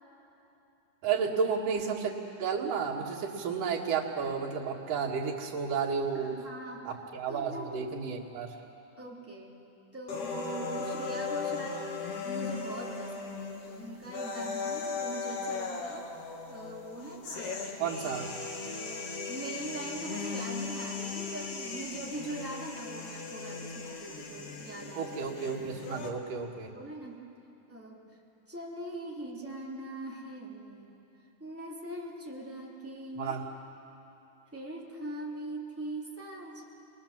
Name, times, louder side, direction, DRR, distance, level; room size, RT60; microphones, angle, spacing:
voice 1, 1.0-2.1 2.4-6.3 6.8-8.5 17.8-18.3 24.9-26.7 33.1-33.4, right 6 dB, 90° right, -2 dB, 3.6 m, -32 dB
voice 2, 6.1-6.9 7.3-7.7 9.0-9.5 9.9-16.1 16.5-17.7 18.6-25.2 26.6-27.2 27.7-28.0 28.5-31.0 31.4-33.4 34.5-36.6, right 1 dB, 5° right, -4 dB, 2.7 m, -41 dB
sound 1, 10.1-26.1, left 4 dB, 50° left, 2.3 m, -38 dB
29.0 x 20.5 x 7.4 m, 2.9 s
omnidirectional pair, 3.7 m